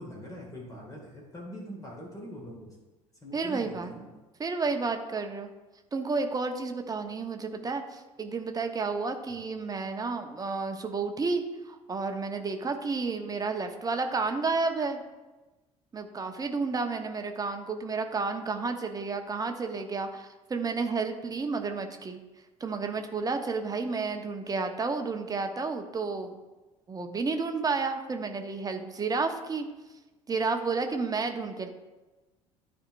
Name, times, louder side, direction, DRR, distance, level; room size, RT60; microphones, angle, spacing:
voice 1, 0.0-2.8 3.2-4.1 9.3-9.4, equal, 20° left, -2 dB, 1.8 m, -43 dB
voice 2, 3.3-3.9 4.4-5.5 5.9-15.0 15.9-22.2 22.6-26.4 26.9-29.7 30.3-31.7, right 4 dB, 20° right, 5 dB, 0.9 m, -31 dB
12.5 x 4.7 x 2.5 m, 1.1 s
figure-of-eight pair, 60°, 18 cm